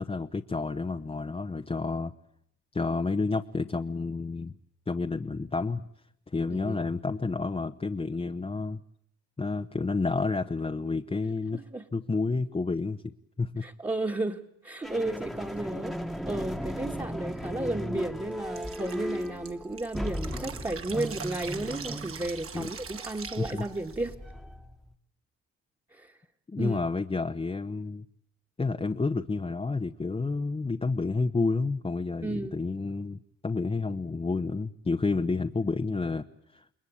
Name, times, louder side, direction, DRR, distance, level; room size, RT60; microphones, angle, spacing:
voice 1, 0.0-2.1 2.7-4.5 4.9-5.9 6.3-8.8 9.4-11.6 11.9-13.1 13.4-13.6 22.5-22.7 23.4-23.6 26.5-28.0 28.6-36.3 36.5-36.7, left 3 dB, 20° left, 5 dB, 1.0 m, -30 dB
voice 2, 11.5-11.8 13.6-24.2 25.9-26.2 26.6-26.8 32.2-32.6, right 2 dB, 15° right, -1 dB, 1.8 m, -33 dB
sound 1, 14.8-24.9, equal, ahead, 1.6 m, -37 dB
Drip, 18.6-24.1, right 6 dB, 45° right, 2.2 m, -42 dB
29.5 x 21.5 x 8.7 m, 0.71 s
cardioid pair, 90°, 30 cm